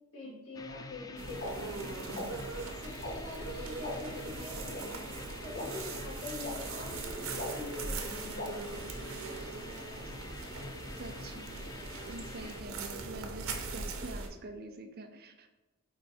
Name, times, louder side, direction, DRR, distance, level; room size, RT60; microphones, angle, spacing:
voice 1, 0.1-2.3 2.8-5.0 5.4-8.4, left 3 dB, 75° left, -4 dB, 2.1 m, -45 dB
sound 1, 0.5-12.6, left 3 dB, 15° left, 0.3 m, -47 dB
sound 2, 1.2-14.3, right 3 dB, 75° right, 0.9 m, -40 dB
sound 3, 1.4-1.5 2.2-2.3 3.0-3.1 3.8-3.9 4.7-4.8 5.5-5.6 6.4-6.5 7.4-7.5 8.4-8.5, left 1 dB, 40° left, 1.2 m, -38 dB
voice 2, 10.9-11.6 12.1-15.5, right 2 dB, 45° right, 6 dB, 0.6 m, -46 dB
5.0 x 4.5 x 4.4 m, 1.1 s
head